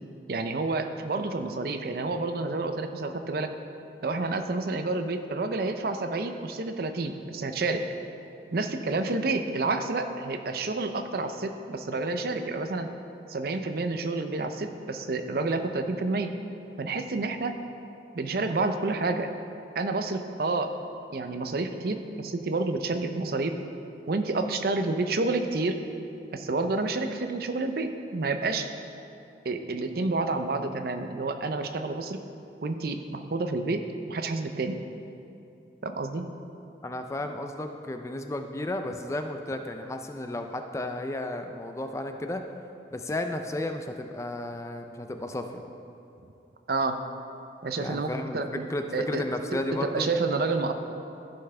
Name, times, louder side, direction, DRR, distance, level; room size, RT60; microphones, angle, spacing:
voice 1, 0.3-3.5 4.0-7.9 8.5-12.9 13.3-16.3 16.8-17.6 18.1-19.3 19.7-20.8 21.1-23.6 24.1-25.8 26.3-28.7 29.4-32.2 32.6-34.8 35.8-36.3 46.7-47.0 47.6-48.7 48.9-49.2 49.5-50.7, right 3 dB, 55° right, 7 dB, 0.5 m, -29 dB
voice 2, 36.8-42.4 42.9-45.6 47.8-48.4 48.7-50.1, left 1 dB, 15° left, 6 dB, 0.3 m, -33 dB
14.5 x 5.7 x 3.3 m, 2.7 s
head